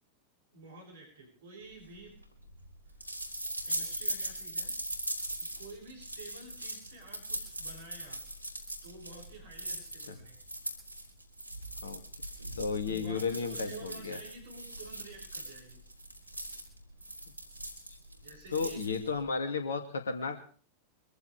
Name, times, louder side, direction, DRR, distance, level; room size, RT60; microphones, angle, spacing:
voice 1, 0.5-2.2 3.2-3.4 3.6-4.7 5.4-8.2 8.8-10.4 12.9-15.8 18.2-18.8, right 3 dB, 60° right, 0 dB, 7.7 m, -50 dB
sound 1, 1.8-19.2, right 1 dB, 85° left, 3.4 m, -40 dB
voice 2, 12.6-14.2 18.5-20.4, left 5 dB, 70° left, 7 dB, 2.5 m, -33 dB
23.5 x 14.5 x 3.5 m, 0.42 s
figure-of-eight pair, 90°, 0 cm